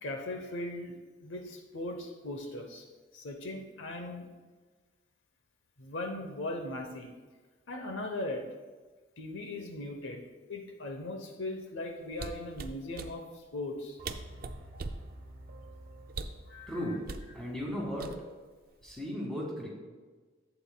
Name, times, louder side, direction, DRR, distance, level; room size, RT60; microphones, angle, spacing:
voice 1, 0.0-2.8 3.1-4.3 5.8-7.1 7.7-8.4 9.2-10.2 10.5-13.2 13.5-14.0 16.5-17.0, left 2 dB, 75° left, 3 dB, 0.8 m, -39 dB
sound 1, 12.1-13.1 13.8-13.9 14.0-15.1 16.1-16.5 17.1-17.3 18.0-18.5 18.8-19.1, right 3 dB, 45° right, 0.4 m, -39 dB
sound 2, 14.0-18.2, right 1 dB, 70° right, 1.2 m, -51 dB
voice 2, 16.7-17.1 17.3-18.1 18.8-19.7, equal, 5° left, -4 dB, 1.9 m, -35 dB
11.5 x 8.2 x 2.3 m, 1.4 s
head